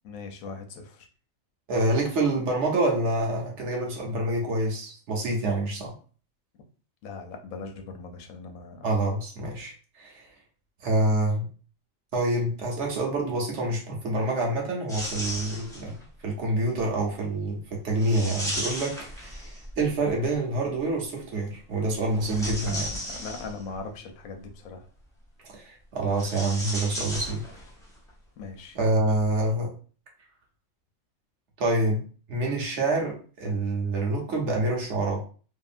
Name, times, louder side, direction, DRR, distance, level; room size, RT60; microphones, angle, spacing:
voice 1, 0.0-1.1 7.0-8.9 22.6-24.9 28.4-28.8, left 4 dB, 90° left, 5 dB, 1.0 m, -40 dB
voice 2, 1.7-6.0 8.8-10.2 10.8-11.5 12.1-16.0 16.2-22.9 25.5-27.4 28.7-29.7 31.6-32.0 32.3-35.2, right 2 dB, 65° right, 0 dB, 1.0 m, -27 dB
sound 1, 14.9-16.0 18.0-19.8 22.0-23.8 26.1-27.8 28.1-28.2 29.2-29.3, equal, 5° left, 0.7 m, -35 dB
2.8 x 2.5 x 2.4 m, 0.40 s
omnidirectional pair, 1.4 m